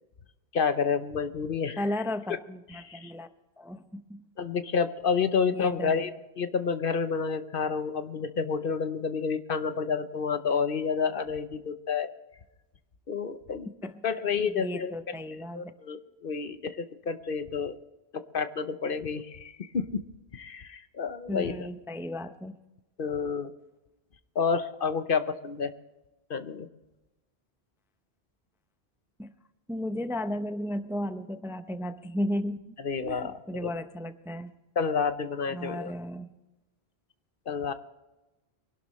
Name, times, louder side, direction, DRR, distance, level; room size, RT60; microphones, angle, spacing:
voice 1, 0.5-1.8 2.8-3.1 4.4-6.1 6.4-12.1 13.1-13.7 14.0-14.9 15.5-17.8 18.3-20.0 20.3-21.5 23.0-23.5 24.3-25.7 26.3-26.7 32.8-33.7 34.8-35.9 37.5-37.7, left 5 dB, 60° left, 10 dB, 1.0 m, -29 dB
voice 2, 1.8-3.3 3.6-4.2 5.5-6.1 13.8-14.2 14.6-15.7 21.3-22.6 29.2-29.3 29.7-32.7 33.0-34.5 35.5-36.3, left 1 dB, 5° right, 9 dB, 0.5 m, -34 dB
24.0 x 12.0 x 3.1 m, 1.0 s
omnidirectional pair, 1.1 m